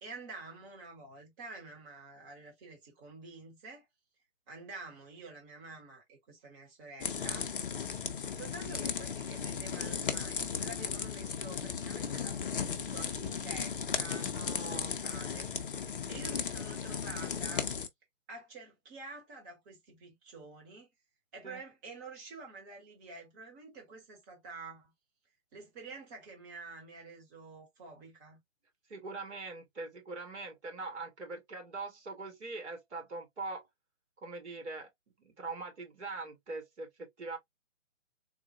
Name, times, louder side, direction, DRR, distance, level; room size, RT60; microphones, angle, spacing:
voice 1, 0.0-3.8 4.5-7.5 8.3-15.5 15.8-17.7 18.3-20.9 21.3-24.9 25.5-28.4, right 3 dB, 15° right, 0.9 m, -48 dB
sound 1, 7.0-17.9, left 6 dB, 45° left, 0.6 m, -36 dB
voice 2, 14.2-14.9 21.4-21.6 28.9-33.7 34.2-34.9 35.2-37.4, right 3 dB, 60° right, 1.9 m, -42 dB
3.7 x 2.1 x 2.6 m
figure-of-eight pair, 140°, 39 cm